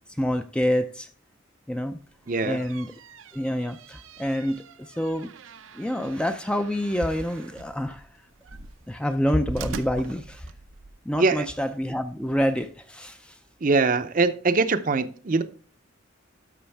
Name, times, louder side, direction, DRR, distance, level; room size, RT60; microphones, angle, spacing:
voice 1, 0.2-1.1 1.7-2.0 2.4-2.9 3.3-5.3 5.7-8.0 8.9-10.5 11.1-13.4, equal, 5° left, 0.4 m, -27 dB
sound 1, 2.1-11.0, right 4 dB, 80° right, 0.6 m, -43 dB
voice 2, 2.3-2.6 11.2-11.5 13.6-15.4, right 3 dB, 40° right, 0.6 m, -22 dB
12.5 x 6.1 x 3.4 m
head